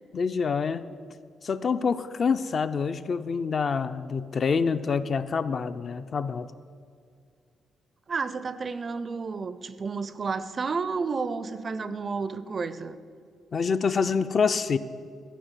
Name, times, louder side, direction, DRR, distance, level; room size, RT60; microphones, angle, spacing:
voice 1, 0.1-0.9 1.4-6.5 13.5-14.8, left 5 dB, 40° left, 11 dB, 0.3 m, -26 dB
voice 2, 8.1-13.0, right 4 dB, 35° right, 14 dB, 0.4 m, -31 dB
13.5 x 5.1 x 8.0 m, 2.2 s
cardioid pair, 140°, 0 cm